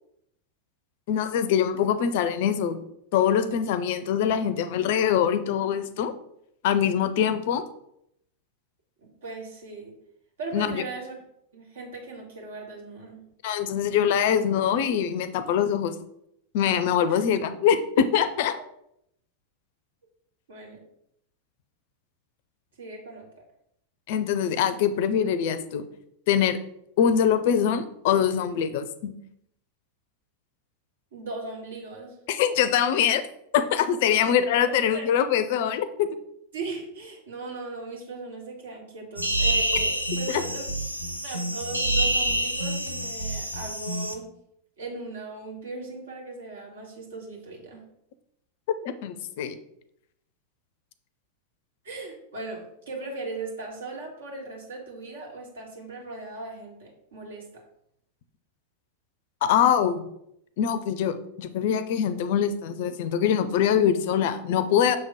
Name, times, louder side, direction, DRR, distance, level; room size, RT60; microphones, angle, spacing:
voice 1, 1.1-2.8 3.1-6.1 6.6-7.6 10.5-10.8 13.4-16.0 16.5-18.6 24.1-25.9 26.3-26.6 27.0-29.1 32.3-33.2 33.5-36.1 40.3-40.4 48.8-49.6 59.4-60.1 60.6-65.0, left 8 dB, 50° left, 12 dB, 0.5 m, -23 dB
voice 2, 9.0-9.9 10.4-11.2 11.5-13.2 17.1-17.2 20.5-20.8 22.8-23.3 31.1-32.2 34.2-35.1 36.5-40.7 41.2-44.3 44.8-47.8 51.8-57.5, right 3 dB, 65° right, -1 dB, 2.0 m, -38 dB
sound 1, 39.2-44.2, right 1 dB, 90° left, 0.6 m, -27 dB
6.4 x 3.6 x 4.8 m, 0.76 s
figure-of-eight pair, 90°, 0 cm